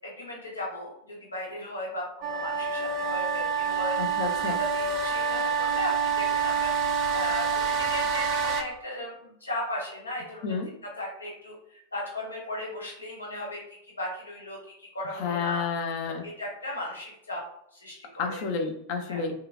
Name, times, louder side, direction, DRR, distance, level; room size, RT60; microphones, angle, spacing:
voice 1, 0.0-4.2 4.7-10.6 11.0-13.6 14.0-15.6 16.2-17.4 17.7-18.4 19.1-19.2, left 1 dB, 80° left, -3 dB, 1.1 m, -37 dB
sound 1, 2.2-8.6, right 6 dB, 35° right, 0.4 m, -27 dB
voice 2, 4.0-4.6 10.4-10.7 15.1-16.2 18.2-19.3, left 5 dB, 45° left, 4 dB, 0.5 m, -30 dB
2.9 x 2.5 x 2.4 m, 0.74 s
figure-of-eight pair, 90°, 0 cm